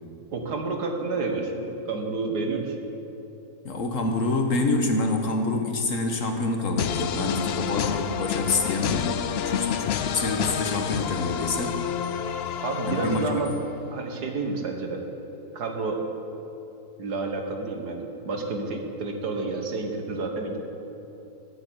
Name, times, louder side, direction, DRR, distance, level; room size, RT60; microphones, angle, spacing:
voice 1, 0.3-2.8 12.6-13.5 13.9-15.0 15.5-16.0 17.0-20.6, right 3 dB, 85° right, 3 dB, 2.0 m, -29 dB
voice 2, 3.6-11.8 12.8-13.3, left 3 dB, 55° left, 4 dB, 1.5 m, -27 dB
sound 1, 6.8-13.7, left 8 dB, 75° left, 0.5 m, -29 dB
14.5 x 7.8 x 8.1 m, 2.9 s
omnidirectional pair, 1.7 m